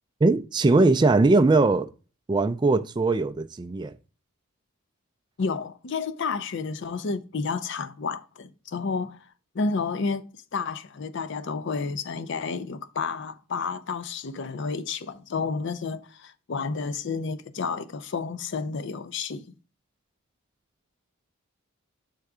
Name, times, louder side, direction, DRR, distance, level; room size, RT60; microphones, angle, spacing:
voice 1, 0.2-1.9 2.3-3.9, right 3 dB, 20° right, 0.3 m, -20 dB
voice 2, 5.4-9.3 9.5-19.5, left 4 dB, 55° left, 0.5 m, -31 dB
6.6 x 3.4 x 4.8 m
head